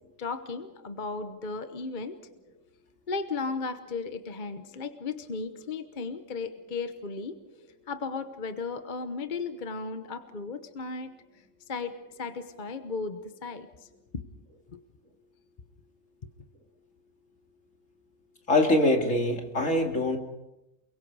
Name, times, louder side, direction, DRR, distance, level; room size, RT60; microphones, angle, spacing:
voice 1, 0.2-2.1 3.1-7.3 7.9-11.1 11.7-13.9 14.1-14.3 14.7-14.8, left 4 dB, 40° left, 9 dB, 1.1 m, -35 dB
voice 2, 18.5-20.2, left 1 dB, 65° left, 3 dB, 3.0 m, -23 dB
28.5 x 22.5 x 4.8 m, 0.92 s
omnidirectional pair, 1.4 m